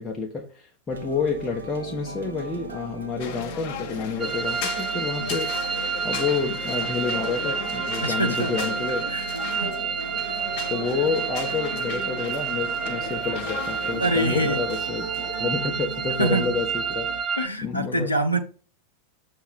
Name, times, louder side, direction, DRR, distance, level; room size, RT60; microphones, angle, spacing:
voice 1, 0.0-9.1 10.7-17.1 17.6-18.1, left 5 dB, 15° left, 1.2 m, -29 dB
sound 1, 0.9-17.2, right 4 dB, 75° right, 0.9 m, -38 dB
sound 2, 3.2-15.3, left 8 dB, 45° left, 0.9 m, -37 dB
sound 3, 4.2-17.5, right 6 dB, 25° right, 0.8 m, -30 dB
voice 2, 8.0-8.5 9.1-9.7 14.0-14.6 16.2-16.6 17.4-18.4, right 1 dB, 85° left, 0.9 m, -25 dB
7.0 x 3.8 x 5.1 m
figure-of-eight pair, 90°, 0 cm